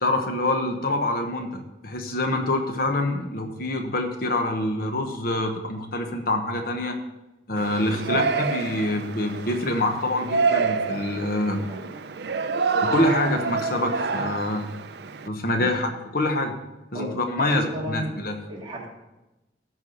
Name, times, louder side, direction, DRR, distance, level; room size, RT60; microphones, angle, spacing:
voice 1, 0.0-7.0 7.5-11.7 12.8-14.6 15.3-16.5 16.9-18.3, left 1 dB, 55° left, 4 dB, 1.1 m, -26 dB
Yell, 7.6-15.3, right 4 dB, 60° right, 0.5 m, -28 dB
voice 2, 7.9-8.2 11.7-11.8 15.6-15.7 16.9-17.1 17.4-18.1 18.5-18.9, right 1 dB, 25° right, -4 dB, 2.8 m, -33 dB
13.5 x 4.7 x 6.7 m, 1.0 s
head